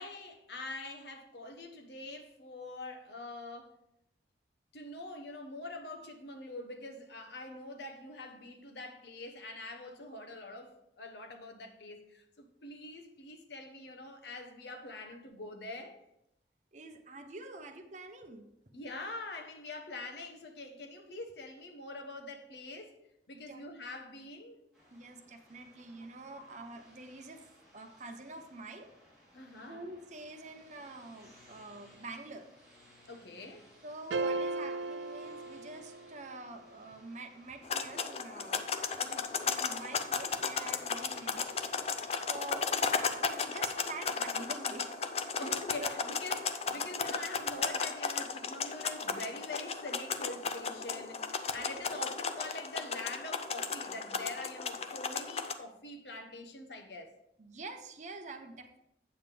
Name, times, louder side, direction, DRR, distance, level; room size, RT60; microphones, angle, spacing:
voice 1, 0.0-3.7 4.7-16.0 18.7-23.0 23.3-24.6 26.3-26.4 29.3-29.8 30.5-30.6 33.1-33.7 45.4-57.1, left 2 dB, 70° left, 1.0 m, -44 dB
voice 2, 16.7-18.5 23.5-23.7 24.9-27.4 27.7-28.9 29.7-32.5 33.8-38.6 39.0-41.6 42.2-45.5 45.8-45.9 57.4-58.8, right 2 dB, 40° right, 0.8 m, -47 dB
sound 1, 24.7-44.0, equal, ahead, 3.4 m, -61 dB
sound 2, 34.1-36.4, right 3 dB, 85° right, 0.4 m, -36 dB
sound 3, 37.6-55.5, left 5 dB, 35° left, 0.5 m, -35 dB
8.7 x 7.3 x 3.4 m
head